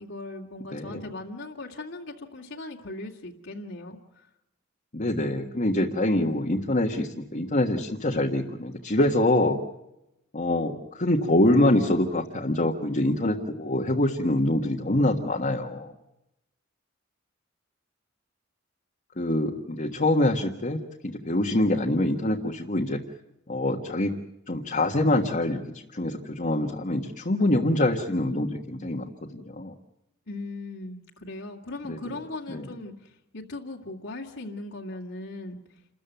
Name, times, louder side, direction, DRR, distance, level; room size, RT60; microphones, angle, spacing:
voice 1, 0.0-4.3 30.3-35.6, left 2 dB, 65° left, -2 dB, 2.3 m, -38 dB
voice 2, 0.7-1.0 4.9-9.6 10.3-15.9 19.2-23.0 23.5-24.2 24.5-25.6 25.9-29.0 29.3-29.7 31.9-32.2 32.5-32.7, left 1 dB, 40° left, -1 dB, 1.6 m, -25 dB
29.0 x 14.0 x 9.2 m, 0.88 s
head